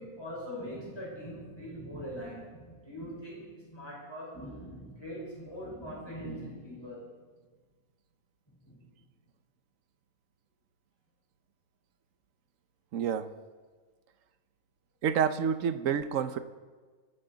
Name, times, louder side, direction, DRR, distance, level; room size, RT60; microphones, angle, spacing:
voice 1, 0.0-7.1 8.5-8.9, equal, 15° left, -6 dB, 4.9 m, -42 dB
voice 2, 12.9-13.3 15.0-16.4, right 7 dB, 60° right, 11 dB, 1.1 m, -28 dB
26.5 x 9.3 x 4.0 m, 1.4 s
omnidirectional pair, 1.6 m